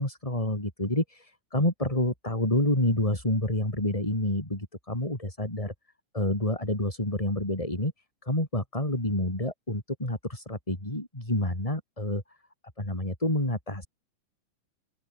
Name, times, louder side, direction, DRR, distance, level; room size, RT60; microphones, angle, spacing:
voice 1, 0.0-5.7 6.1-7.9 8.2-12.2 12.8-13.9, left 1 dB, 10° left, 4.6 m, -28 dB
open air
omnidirectional pair, 3.6 m